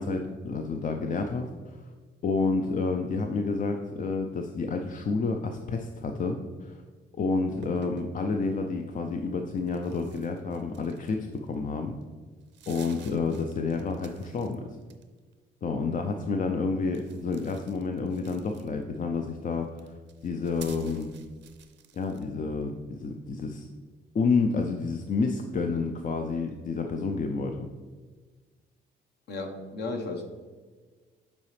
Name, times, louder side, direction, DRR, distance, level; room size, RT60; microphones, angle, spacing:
voice 1, 0.0-1.8 2.2-6.8 7.2-11.9 12.7-14.6 15.6-19.8 20.2-21.1 21.9-23.7 24.1-27.7, left 4 dB, 40° left, 5 dB, 0.5 m, -29 dB
sound 1, 7.5-8.2 9.6-11.5 12.0-12.1 12.4-14.5 14.8-15.3 16.9-19.0 19.6-22.3, right 7 dB, 65° right, 0.6 m, -51 dB
voice 2, 29.3-30.3, left 2 dB, 60° left, 4 dB, 1.1 m, -34 dB
8.4 x 4.1 x 3.3 m, 1.4 s
cardioid pair, 90°, 20 cm